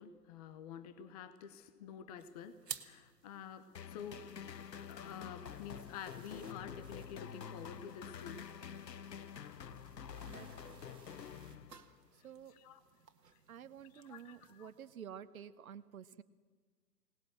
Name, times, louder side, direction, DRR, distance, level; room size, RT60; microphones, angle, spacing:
voice 1, 0.0-4.3 4.9-8.4 12.2-12.3 12.5-12.8 13.9-14.7, left 8 dB, 25° left, 12 dB, 0.9 m, -49 dB
sound 1, 2.2-15.0, right 6 dB, 75° right, 1.6 m, -56 dB
sound 2, 3.7-12.1, left 7 dB, 80° left, 0.8 m, -48 dB
sound 3, 5.4-11.6, right 9 dB, 10° right, 0.9 m, -67 dB
voice 2, 10.2-10.9 12.1-12.5 13.5-16.2, right 8 dB, 60° right, 12 dB, 1.1 m, -51 dB
22.5 x 19.0 x 7.6 m, 1.5 s
figure-of-eight pair, 125°, 49 cm